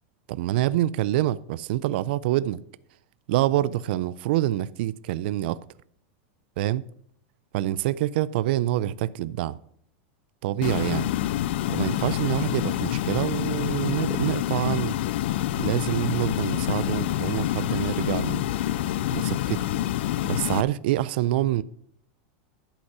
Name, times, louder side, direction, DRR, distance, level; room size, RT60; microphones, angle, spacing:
voice 1, 0.3-2.6 3.3-5.6 6.6-6.8 7.5-9.6 10.4-11.1 11.7-15.0 15.6-18.4 19.1-19.6 20.2-21.6, right 14 dB, 55° right, 0.3 m, -26 dB
sound 1, 10.6-20.6, left 13 dB, 60° left, 0.4 m, -27 dB
11.5 x 5.3 x 6.0 m
supercardioid pair, 170°, 7 cm